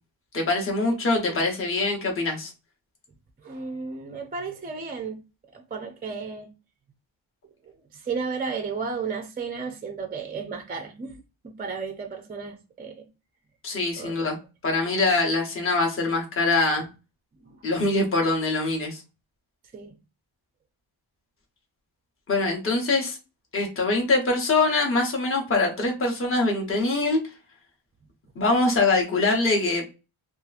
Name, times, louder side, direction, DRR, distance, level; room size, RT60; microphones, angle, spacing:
voice 1, 0.3-2.5 13.6-14.4 14.6-16.8 17.6-19.0 22.3-23.2 23.5-27.2 28.4-29.8, left 3 dB, 25° left, 0.8 m, -23 dB
voice 2, 3.4-5.2 5.5-6.5 7.6-13.1 14.0-14.3 17.4-17.6 19.7-19.9, right 5 dB, 20° right, 0.4 m, -34 dB
2.8 x 2.4 x 2.3 m
wide cardioid pair, 115°, 49 cm